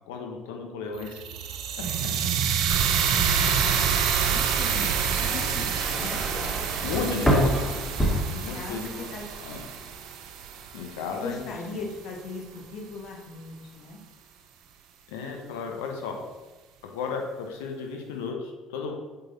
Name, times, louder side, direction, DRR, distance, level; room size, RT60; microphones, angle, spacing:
voice 1, 0.1-1.2 3.6-3.8 6.8-7.7 8.4-9.1 9.4-9.6 10.7-11.4 15.1-16.2 16.8-18.9, left 5 dB, 70° left, 2 dB, 1.0 m, -33 dB
sound 1, 1.0-11.1, right 7 dB, 60° right, 0.7 m, -27 dB
voice 2, 3.4-6.6 7.2-7.3 8.3-9.9 11.1-14.0, left 3 dB, 55° left, 1 dB, 1.4 m, -39 dB
sound 2, 4.8-9.0 9.3-9.9, equal, 10° left, 1.7 m, -28 dB
7.8 x 4.1 x 4.1 m, 1.2 s
figure-of-eight pair, 60°, 0 cm